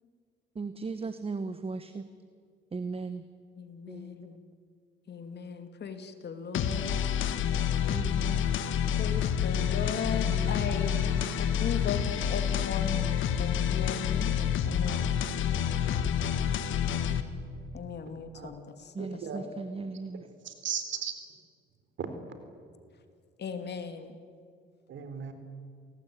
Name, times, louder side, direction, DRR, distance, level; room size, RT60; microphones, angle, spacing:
voice 1, 0.5-2.0 2.7-3.2 3.9-4.1 7.9-8.6 10.1-10.6 11.0-11.3 18.9-20.3, right 4 dB, 30° right, 11 dB, 1.3 m, -37 dB
voice 2, 3.5-4.4 5.1-7.0 9.0-11.2 11.6-13.1 13.4-14.4 14.7-15.1 17.7-19.5 23.4-24.2, left 6 dB, 55° left, 8 dB, 2.7 m, -37 dB
sound 1, 6.5-17.2, left 8 dB, 80° left, 1.8 m, -28 dB
voice 3, 19.0-19.4 20.1-21.1 22.0-22.1 24.9-25.3, right 8 dB, 70° right, 8 dB, 3.9 m, -36 dB
28.5 x 18.5 x 9.5 m, 2.2 s
cardioid pair, 90°, 20 cm